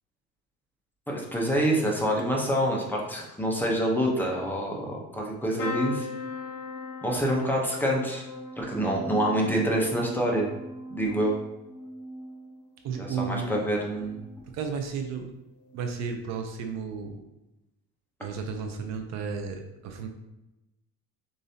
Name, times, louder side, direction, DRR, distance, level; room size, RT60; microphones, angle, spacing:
voice 1, 1.1-6.1 7.0-8.2 8.6-10.5 10.9-11.4 13.0-14.2, equal, 5° left, -2 dB, 0.8 m, -26 dB
sound 1, 5.6-13.4 13.9-14.4 15.7-15.9 16.1-16.2, left 2 dB, 50° left, 1.1 m, -39 dB
voice 2, 12.8-13.7 14.5-15.3 15.7-17.2 18.2-20.1, right 5 dB, 55° right, 4 dB, 0.6 m, -33 dB
6.8 x 2.7 x 2.8 m, 0.97 s
cardioid pair, 130°, 32 cm